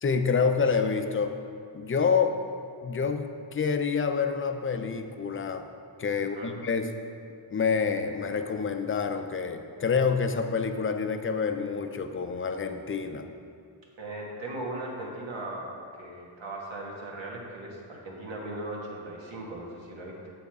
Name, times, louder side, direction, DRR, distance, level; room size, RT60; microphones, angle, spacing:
voice 1, 0.0-1.3 1.7-2.3 2.8-5.6 6.0-6.9 7.5-13.2, left 5 dB, 25° left, 7 dB, 0.6 m, -27 dB
voice 2, 6.2-6.5 14.0-15.7 16.0-20.3, right 1 dB, 70° right, -2 dB, 1.8 m, -38 dB
8.3 x 7.6 x 3.6 m, 2.4 s
cardioid pair, 85°, 47 cm